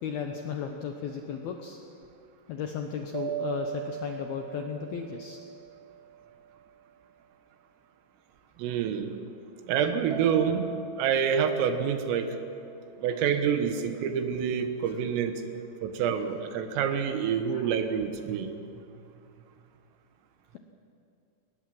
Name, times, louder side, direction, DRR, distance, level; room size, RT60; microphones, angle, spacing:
voice 1, 0.0-1.8 2.5-5.4 17.5-17.8, left 7 dB, 80° left, 4 dB, 2.2 m, -35 dB
sound 1, 3.1-6.7 10.1-13.1, right 8 dB, 50° right, 2.0 m, -40 dB
voice 2, 8.6-9.2 9.7-12.3 13.0-15.4 15.8-18.5, right 7 dB, 85° right, 7 dB, 4.0 m, -27 dB
22.0 x 20.0 x 7.7 m, 2.6 s
omnidirectional pair, 5.8 m